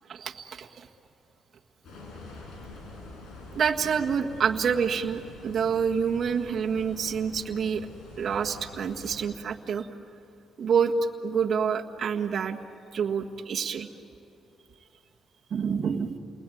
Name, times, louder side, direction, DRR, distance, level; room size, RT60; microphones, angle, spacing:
voice 1, 0.1-0.9 3.5-7.9 8.2-9.9 10.6-10.9 11.2-12.6 12.9-13.9 15.5-16.2, right 7 dB, 55° right, 1 dB, 1.6 m, -27 dB
sound 1, 1.8-9.3, left 2 dB, 70° left, 5.9 m, -45 dB
29.5 x 20.5 x 9.4 m, 2.7 s
cardioid pair, 90°, 0 cm